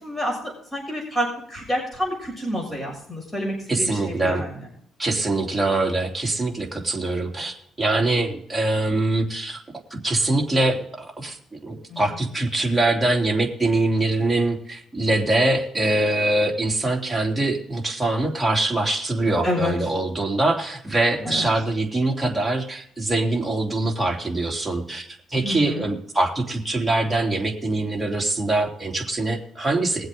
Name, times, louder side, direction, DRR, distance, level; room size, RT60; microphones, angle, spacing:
voice 1, 0.0-4.6 11.9-12.2 19.4-19.7 21.2-21.5 25.3-25.9, equal, 15° left, -1 dB, 7.2 m, -29 dB
voice 2, 3.7-4.4 5.0-9.6 9.9-30.1, right 2 dB, 10° right, -2 dB, 3.3 m, -23 dB
22.0 x 7.9 x 3.8 m, 0.65 s
cardioid pair, 115°, 0 cm